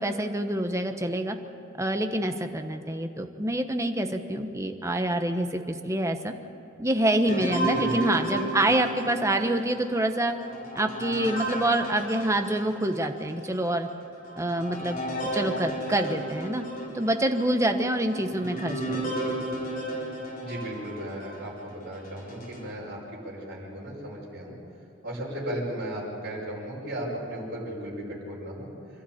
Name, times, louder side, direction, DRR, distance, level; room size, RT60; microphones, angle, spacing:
voice 1, 0.0-1.4 1.8-6.3 6.8-10.3 10.7-13.9 14.4-15.0 15.3-16.6 16.9-19.3, right 1 dB, 15° right, 6 dB, 1.1 m, -26 dB
sound 1, 7.3-13.0 13.6-13.7 14.2-21.4 22.0-22.6, right 1 dB, 40° left, 4.2 m, -33 dB
voice 2, 7.8-8.2 20.4-24.6 25.0-28.7, right 1 dB, 50° right, -5 dB, 5.8 m, -36 dB
26.0 x 13.0 x 8.8 m, 2.8 s
head